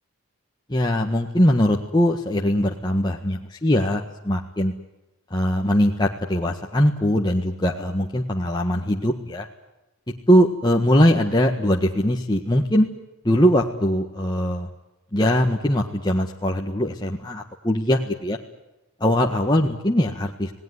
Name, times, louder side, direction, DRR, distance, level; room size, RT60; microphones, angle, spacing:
voice 1, 0.7-4.7 5.3-9.5 10.3-12.9 13.2-14.7 15.1-18.4 19.0-20.5, equal, 20° left, 0 dB, 1.6 m, -21 dB
28.0 x 19.0 x 9.7 m, 1.0 s
head